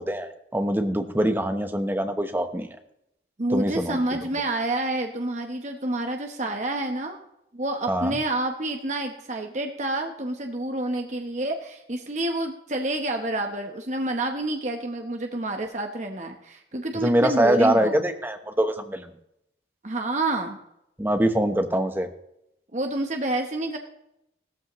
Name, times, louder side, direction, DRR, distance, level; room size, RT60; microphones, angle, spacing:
voice 1, 0.0-2.7 3.5-4.2 7.9-8.2 16.9-19.1 21.0-22.1, right 1 dB, 10° right, 6 dB, 1.0 m, -24 dB
voice 2, 3.4-7.2 7.5-18.0 19.8-20.6 22.7-23.8, right 2 dB, 40° right, 4 dB, 1.1 m, -28 dB
16.5 x 13.5 x 3.1 m, 0.80 s
head